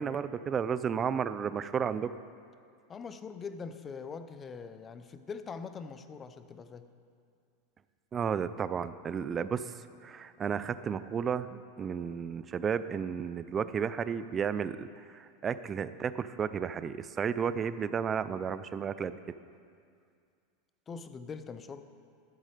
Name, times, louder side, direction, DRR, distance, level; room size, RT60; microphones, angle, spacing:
voice 1, 0.0-2.1 8.1-9.7 10.0-19.2, right 7 dB, 25° right, 14 dB, 0.4 m, -33 dB
voice 2, 2.9-6.9 20.9-21.8, left 5 dB, 25° left, 11 dB, 0.6 m, -42 dB
13.5 x 7.3 x 5.1 m, 2.3 s
supercardioid pair, 130°, 0 cm